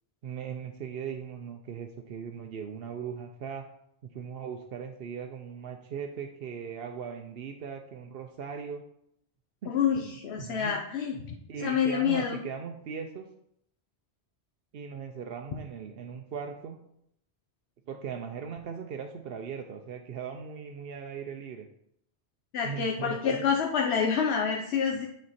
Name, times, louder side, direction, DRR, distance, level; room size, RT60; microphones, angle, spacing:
voice 1, 0.2-3.7 4.0-8.8 9.6-10.8 11.1-13.3 14.7-16.8 17.9-21.7 22.6-23.5, right 7 dB, 65° right, 3 dB, 0.8 m, -39 dB
voice 2, 9.7-12.4 22.5-25.1, left 7 dB, 70° left, 1 dB, 1.0 m, -28 dB
9.5 x 4.4 x 4.2 m, 0.75 s
omnidirectional pair, 1.1 m